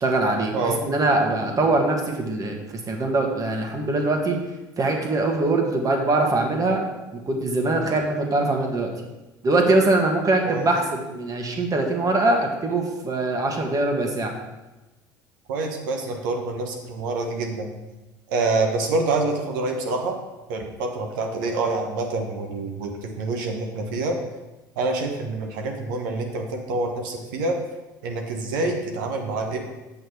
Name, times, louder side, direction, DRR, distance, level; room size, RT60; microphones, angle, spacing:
voice 1, 0.0-2.6 2.9-4.4 4.8-6.8 7.1-8.9 9.4-14.3, right 2 dB, 35° right, 2 dB, 1.8 m, -22 dB
voice 2, 15.5-17.7 18.3-20.2 20.5-24.2 24.7-27.6 28.0-29.6, right 3 dB, 75° right, 2 dB, 1.2 m, -26 dB
7.9 x 6.4 x 4.7 m, 1.1 s
hypercardioid pair, 70°, 11 cm